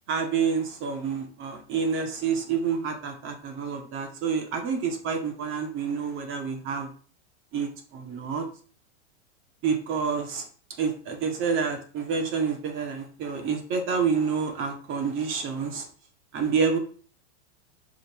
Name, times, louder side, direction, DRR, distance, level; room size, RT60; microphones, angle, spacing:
voice 1, 0.1-6.9 7.5-8.4 9.6-10.4 10.8-15.9 16.3-16.8, right 6 dB, 35° right, 4 dB, 1.8 m, -28 dB
5.3 x 5.2 x 4.7 m, 0.41 s
supercardioid pair, 135°, 35 cm